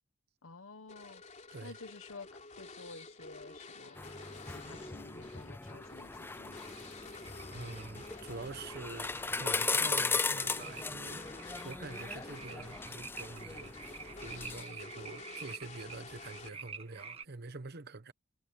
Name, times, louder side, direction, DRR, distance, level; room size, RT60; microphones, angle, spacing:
voice 1, 0.4-1.2 1.6-2.3 2.6-4.0 4.4-6.6, left 3 dB, 75° left, 1.3 m, -51 dB
sound 1, 0.9-16.8, left 3 dB, 35° left, 3.6 m, -51 dB
sound 2, 3.5-17.2, right 5 dB, 30° right, 1.9 m, -51 dB
sound 3, 4.0-14.6, left 4 dB, 10° left, 0.3 m, -38 dB
voice 2, 7.5-11.2 11.6-13.7 14.2-18.1, right 3 dB, 50° right, 1.0 m, -46 dB
head